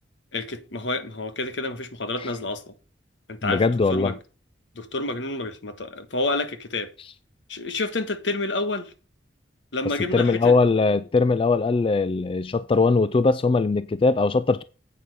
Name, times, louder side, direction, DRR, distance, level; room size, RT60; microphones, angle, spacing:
voice 1, 0.3-2.7 3.3-4.1 4.7-6.9 7.5-8.9 9.7-10.5, left 2 dB, 80° left, 1.4 m, -29 dB
voice 2, 3.4-4.1 10.1-14.6, left 3 dB, 30° left, 0.4 m, -21 dB
8.5 x 6.7 x 4.7 m
head